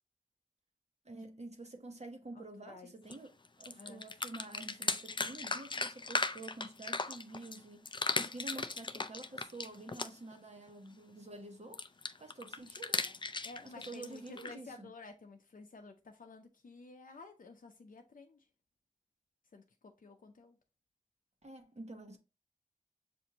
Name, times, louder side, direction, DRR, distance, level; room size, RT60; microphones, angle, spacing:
voice 1, 1.0-11.9 12.2-13.1 13.6-14.9 21.4-22.2, right 2 dB, 55° right, 1.1 m, -49 dB
voice 2, 2.3-2.9 3.8-4.0 13.4-18.5 19.5-20.6, left 3 dB, 80° left, 0.6 m, -52 dB
sound 1, 3.1-3.2 3.4-7.6 7.8-10.3 11.7-14.5, left 3 dB, 35° left, 0.4 m, -37 dB
6.9 x 2.6 x 2.8 m
wide cardioid pair, 40°, 14 cm